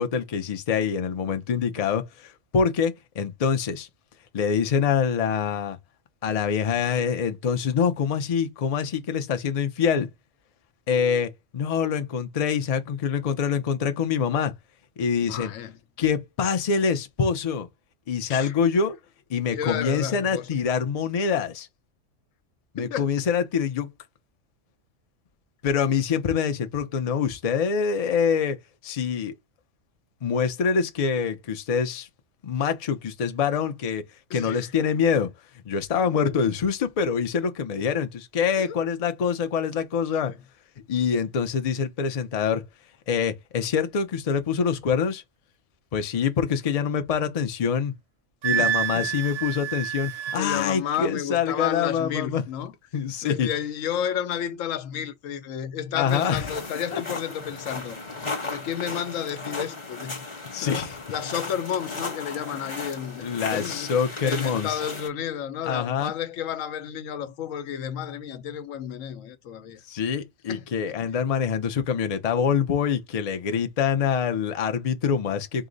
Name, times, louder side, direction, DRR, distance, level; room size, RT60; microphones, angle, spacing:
voice 1, 0.0-3.9 4.3-5.8 6.2-10.1 10.9-14.5 15.0-15.5 16.0-17.7 18.1-19.0 19.3-21.7 22.7-23.9 25.6-28.6 28.8-29.3 30.2-32.1 32.4-34.0 34.3-35.3 35.7-40.3 40.9-42.6 43.1-45.2 45.9-47.9 48.4-52.4 52.9-53.5 55.9-56.5 56.9-57.0 60.5-61.0 63.2-64.8 65.6-66.1 69.9-75.7, left 6 dB, 50° left, 0.4 m, -25 dB
voice 2, 15.2-15.8 18.3-18.5 19.5-20.5 22.8-23.1 34.3-34.7 36.2-36.3 38.6-38.8 40.2-40.4 48.6-49.1 50.1-52.7 53.2-58.0 58.4-60.2 60.6-63.9 64.2-69.8 70.5-71.0, left 9 dB, 80° left, 1.0 m, -32 dB
Wind instrument woodwind instrument, 48.4-50.4, right 11 dB, 65° right, 0.7 m, -27 dB
sound 1, 56.1-65.1, left 3 dB, 25° left, 0.9 m, -35 dB
4.6 x 2.1 x 3.8 m
omnidirectional pair, 1.3 m